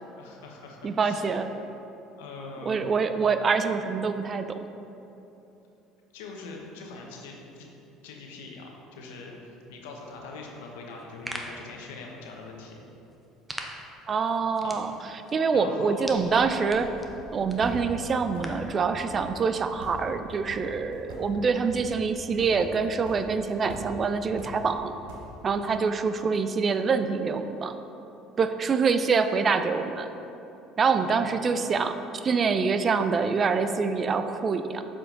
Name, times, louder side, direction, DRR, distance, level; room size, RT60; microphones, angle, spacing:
voice 1, 0.2-1.5 2.2-2.9 6.1-7.7 8.0-12.8 14.6-14.8 15.5-16.2 31.0-31.2, left 3 dB, 85° left, 0 dB, 1.0 m, -42 dB
voice 2, 0.8-1.5 2.7-4.6 14.1-14.9 15.3-16.9 17.3-25.0 25.4-27.8 28.4-30.1 30.8-34.8, right 5 dB, 40° right, 9 dB, 0.4 m, -25 dB
sound 1, 10.9-18.7, right 1 dB, 10° right, 0.8 m, -44 dB
sound 2, 16.0-25.6, equal, 90° right, 1.2 m, -44 dB
7.3 x 5.1 x 3.8 m, 2.9 s
supercardioid pair, 85°, 0 cm